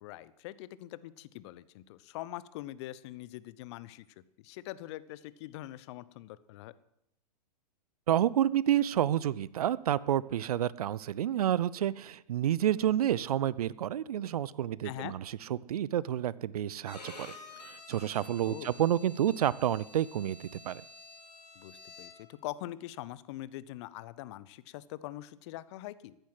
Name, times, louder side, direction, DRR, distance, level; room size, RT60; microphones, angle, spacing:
voice 1, 0.0-4.0 4.4-6.7 14.8-15.1 18.4-18.7 21.5-26.2, left 15 dB, 45° left, 17 dB, 0.9 m, -43 dB
voice 2, 8.1-15.2 15.5-17.3 17.6-20.8, right 11 dB, 65° right, 21 dB, 0.6 m, -29 dB
Bowed string instrument, 16.8-22.4, left 3 dB, 85° left, 2.5 m, -50 dB
14.5 x 10.0 x 7.8 m, 0.80 s
figure-of-eight pair, 110°, 21 cm